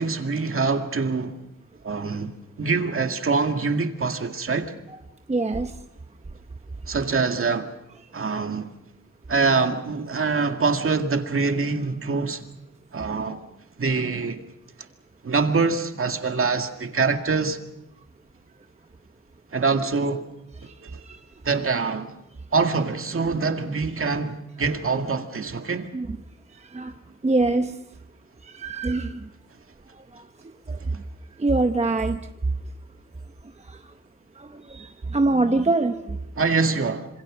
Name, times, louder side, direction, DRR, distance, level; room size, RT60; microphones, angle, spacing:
voice 1, 0.0-1.4 1.8-2.3 2.6-4.7 6.9-7.7 8.1-8.7 9.3-12.5 12.9-13.4 13.8-14.4 15.2-17.6 19.5-20.2 20.8-21.0 21.4-22.1 22.5-25.9 36.4-37.1, right 4 dB, 45° right, 2.1 m, -24 dB
voice 2, 5.3-5.7 20.6-21.2 25.9-26.1 26.5-26.9 27.2-27.8 28.4-29.3 30.1-30.2 30.7-31.0 31.4-32.2 33.7-33.8 34.4-36.2, right 2 dB, 20° right, 0.9 m, -24 dB
26.5 x 26.5 x 6.3 m
wide cardioid pair, 170°, 29 cm